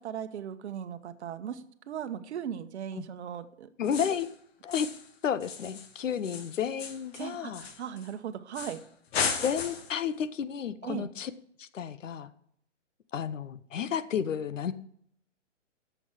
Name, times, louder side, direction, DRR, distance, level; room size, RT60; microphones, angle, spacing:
voice 1, 0.0-3.7 7.1-8.8 10.8-11.1, right 9 dB, 60° right, 10 dB, 1.1 m, -38 dB
voice 2, 3.8-4.3 4.6-4.9 5.2-7.7 9.4-11.3 11.6-12.3 13.1-14.7, left 8 dB, 80° left, 14 dB, 0.9 m, -32 dB
sound 1, 3.8-4.3 4.7-5.1 5.4-8.1 8.5-8.8 9.1-10.0, left 6 dB, 55° left, 1.6 m, -35 dB
8.3 x 7.1 x 7.4 m, 0.68 s
hypercardioid pair, 140°, 37 cm